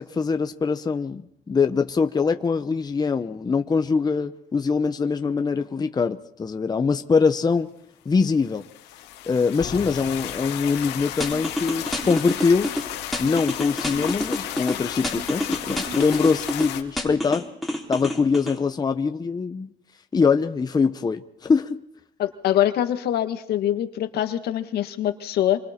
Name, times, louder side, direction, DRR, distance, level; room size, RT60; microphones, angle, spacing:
voice 1, 0.0-7.7 8.0-8.6 9.3-12.8 13.2-17.4 17.9-19.7 20.1-21.8, left 5 dB, 25° left, 7 dB, 0.9 m, -23 dB
sound 1, 8.4-16.8, left 12 dB, 90° left, 2.4 m, -34 dB
sound 2, 9.6-11.4, left 7 dB, 50° left, 2.9 m, -40 dB
sound 3, 11.2-12.8 13.1-14.7 15.0-16.7 17.0-18.6, left 1 dB, ahead, 3.7 m, -27 dB
voice 2, 22.2-25.6, left 11 dB, 70° left, 8 dB, 1.7 m, -24 dB
26.5 x 24.5 x 4.4 m, 0.73 s
cardioid pair, 110°, 17 cm